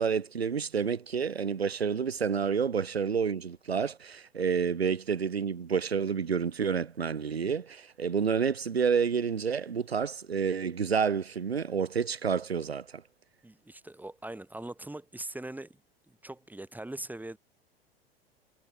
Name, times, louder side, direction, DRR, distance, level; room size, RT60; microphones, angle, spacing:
voice 1, 0.0-13.0, right 6 dB, 80° right, 4.0 m, -29 dB
voice 2, 13.4-15.8 16.1-17.4, right 1 dB, 5° right, 6.7 m, -41 dB
figure-of-eight pair, 85°, 31 cm